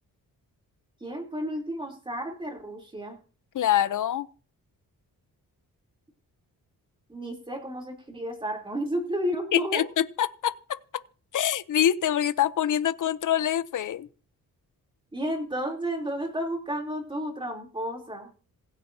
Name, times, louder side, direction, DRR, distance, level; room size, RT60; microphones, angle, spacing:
voice 1, 1.0-3.2 7.1-9.8 15.1-18.3, equal, 15° right, 3.4 m, -32 dB
voice 2, 3.5-4.3 9.5-11.0 11.3-14.1, left 10 dB, 60° left, 0.7 m, -25 dB
27.0 x 9.0 x 2.8 m
wide cardioid pair, 160°, 35 cm